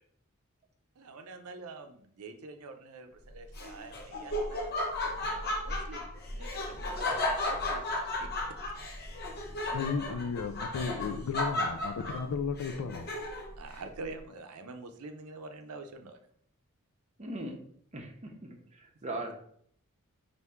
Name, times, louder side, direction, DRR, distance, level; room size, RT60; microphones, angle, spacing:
voice 1, 1.0-4.8 5.0-7.8 8.2-8.3 13.6-16.2, right 3 dB, 85° right, 6 dB, 0.5 m, -46 dB
Laughter, 3.5-13.6, left 1 dB, 50° left, 0.8 m, -34 dB
voice 2, 9.7-13.1, left 5 dB, 80° left, 8 dB, 0.4 m, -34 dB
voice 3, 17.2-17.6 17.9-19.3, right 1 dB, 30° right, 2 dB, 0.7 m, -40 dB
3.5 x 2.6 x 4.3 m, 0.63 s
head